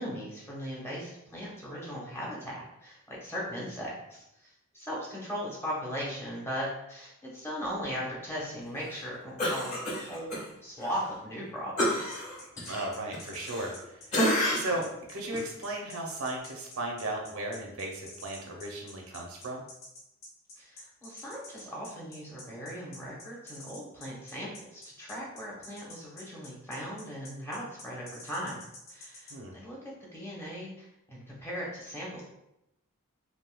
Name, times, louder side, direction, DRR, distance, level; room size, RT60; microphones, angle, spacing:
voice 1, 0.0-12.2 20.6-28.6 28.9-32.2, equal, 10° left, -5 dB, 0.8 m, -38 dB
Cough, 9.4-10.4 10.8-11.0 11.8-13.8 14.1-14.8 15.3-15.5, equal, 35° left, 1.3 m, -29 dB
sound 1, 12.1-29.3, left 2 dB, 75° left, 0.9 m, -48 dB
voice 2, 12.7-14.0 14.5-19.6 29.3-29.5, right 1 dB, 75° right, 0 dB, 0.7 m, -36 dB
3.5 x 2.6 x 2.2 m, 0.84 s
head